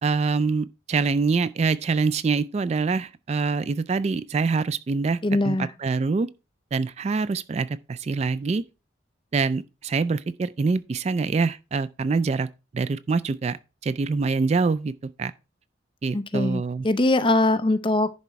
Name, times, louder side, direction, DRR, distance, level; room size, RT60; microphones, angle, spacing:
voice 1, 0.0-5.2 5.4-6.3 6.7-8.6 9.3-12.5 12.7-14.9 15.2-15.3 16.0-16.9, right 4 dB, 35° right, 0.3 m, -25 dB
voice 2, 5.2-5.7 16.1-18.1, left 2 dB, 25° left, 0.6 m, -22 dB
10.5 x 4.2 x 4.6 m
head